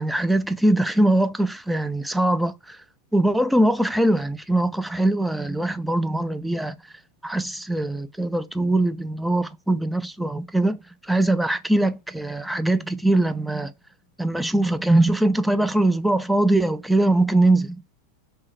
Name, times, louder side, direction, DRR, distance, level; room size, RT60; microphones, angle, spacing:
voice 1, 0.0-2.8 3.1-6.8 7.2-10.8 11.1-13.7 14.2-17.8, right 1 dB, 5° right, 0.3 m, -22 dB
3.0 x 2.7 x 3.1 m
figure-of-eight pair, 90°, 0 cm